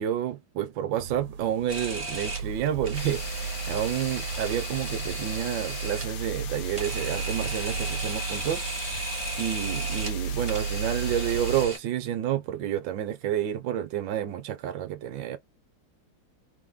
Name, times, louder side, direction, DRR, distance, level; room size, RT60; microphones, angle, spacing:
voice 1, 0.0-8.6 9.4-15.4, right 10 dB, 70° right, 1.4 m, -30 dB
sound 1, 0.9-11.7, right 6 dB, 90° right, 1.5 m, -34 dB
Camera, 1.7-11.8, right 1 dB, 20° right, 1.3 m, -36 dB
sound 2, 2.9-11.7, left 9 dB, 65° left, 1.0 m, -41 dB
3.8 x 3.4 x 3.2 m
omnidirectional pair, 2.2 m